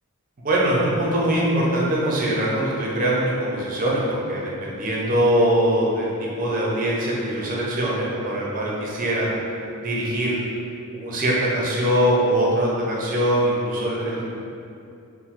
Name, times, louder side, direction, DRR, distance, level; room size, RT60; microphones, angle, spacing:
voice 1, 0.4-9.3 9.8-10.4 10.9-14.2, right 1 dB, 40° right, -4 dB, 0.5 m, -22 dB
3.0 x 2.0 x 2.8 m, 2.6 s
head